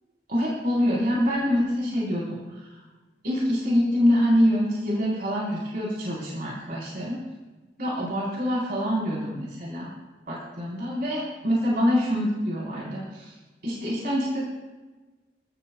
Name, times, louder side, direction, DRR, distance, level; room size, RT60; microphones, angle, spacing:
voice 1, 0.3-2.4 3.2-7.2 7.8-9.9 10.3-13.3 13.6-14.4, equal, 55° right, -5 dB, 4.3 m, -25 dB
29.0 x 14.0 x 2.4 m, 1.2 s
head